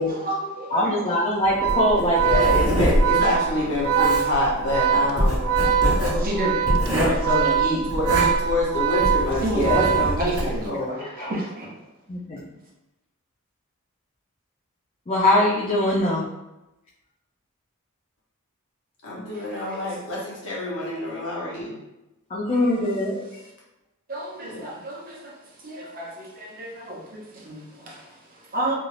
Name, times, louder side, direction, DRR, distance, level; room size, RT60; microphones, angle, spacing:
voice 1, 0.0-1.2 3.2-4.3 5.1-8.3 9.4-11.7 19.3-19.9 23.1-23.2 24.1-28.8, right 1 dB, 40° right, -3 dB, 0.6 m, -30 dB
voice 2, 0.7-2.5 11.0-11.3 12.1-12.5 15.1-16.3 22.3-23.2, left 1 dB, 25° left, -6 dB, 0.4 m, -22 dB
Organ, 1.5-10.6, right 8 dB, 70° right, 0.3 m, -23 dB
Writing, 1.6-10.6, equal, 20° right, 1.2 m, -25 dB
voice 3, 2.2-5.4 5.8-6.2 7.9-8.1 8.4-11.0 19.0-21.7 24.4-24.7, left 2 dB, 65° left, -5 dB, 1.0 m, -27 dB
2.6 x 2.3 x 3.2 m, 0.96 s
head